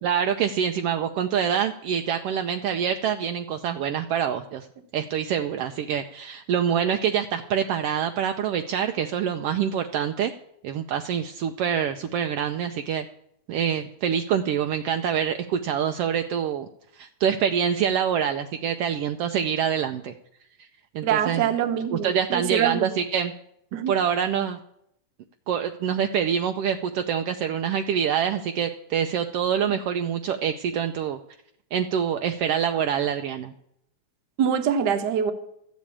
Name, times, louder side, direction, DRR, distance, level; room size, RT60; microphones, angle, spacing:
voice 1, 0.0-4.7 4.9-10.3 10.6-13.1 13.5-16.7 16.9-20.1 20.9-21.4 21.9-23.3 23.9-24.6 25.5-31.2 31.7-33.5, right 8 dB, 85° right, 7 dB, 1.3 m, -25 dB
voice 2, 21.0-22.9 23.7-24.0 34.4-35.3, right 8 dB, 60° right, 8 dB, 1.1 m, -24 dB
13.5 x 7.4 x 8.6 m, 0.74 s
omnidirectional pair, 3.4 m